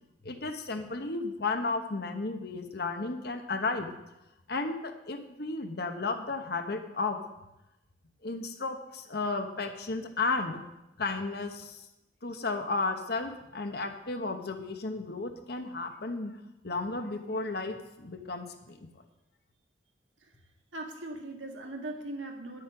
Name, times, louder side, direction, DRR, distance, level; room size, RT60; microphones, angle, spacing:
voice 1, 0.2-3.9 4.5-7.2 8.2-10.6 11.0-11.8 12.2-16.3 16.6-18.9, left 3 dB, 55° left, 6 dB, 1.1 m, -33 dB
voice 2, 20.7-22.6, right 2 dB, 90° right, 2 dB, 1.8 m, -39 dB
9.9 x 8.2 x 5.9 m, 0.94 s
head